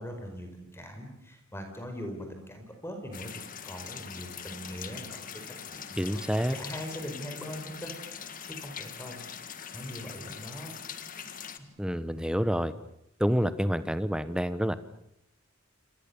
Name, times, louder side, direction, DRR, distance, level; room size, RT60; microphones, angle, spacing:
voice 1, 0.0-5.3 5.7-9.2 9.7-10.7 11.6-11.7, equal, 10° left, 4 dB, 5.1 m, -41 dB
sound 1, 3.1-11.6, left 7 dB, 40° left, 1.8 m, -42 dB
voice 2, 6.0-6.6 11.8-12.7 13.2-14.8, equal, 5° right, 13 dB, 1.1 m, -28 dB
28.0 x 27.0 x 7.2 m, 0.77 s
head